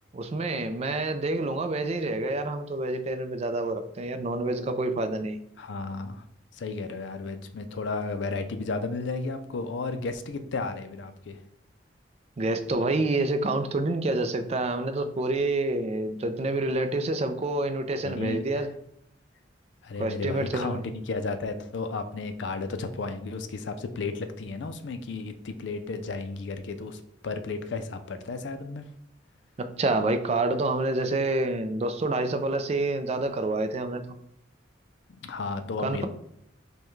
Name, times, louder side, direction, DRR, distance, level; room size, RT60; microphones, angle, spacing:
voice 1, 0.1-5.4 12.4-18.7 20.0-20.8 29.6-34.0 35.8-36.1, right 2 dB, 35° right, 8 dB, 0.4 m, -28 dB
voice 2, 5.6-6.2 6.5-11.4 18.0-18.7 19.8-28.9 35.1-36.1, left 3 dB, 75° left, 9 dB, 0.4 m, -33 dB
5.4 x 2.2 x 3.1 m, 0.74 s
head